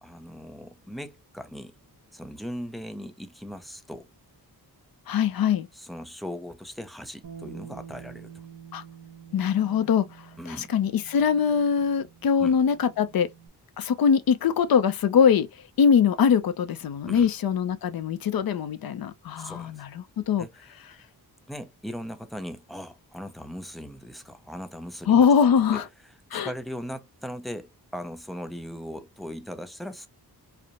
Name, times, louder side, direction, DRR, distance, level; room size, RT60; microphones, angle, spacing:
voice 1, 0.0-1.7 2.1-4.1 5.7-8.3 10.4-10.7 12.4-12.5 17.1-17.3 19.4-19.8 20.4-20.6 20.9-21.0 21.5-25.3 25.7-25.8 26.3-30.1, equal, ahead, 0.4 m, -39 dB
voice 2, 5.1-5.7 8.7-8.8 9.3-10.1 10.5-13.3 13.8-15.5 15.8-20.5 25.1-25.9 26.3-26.5, left 7 dB, 60° left, 0.6 m, -22 dB
Bass guitar, 7.2-13.5, right 7 dB, 55° right, 1.0 m, -47 dB
4.9 x 2.1 x 2.8 m
wide cardioid pair, 170°, 40 cm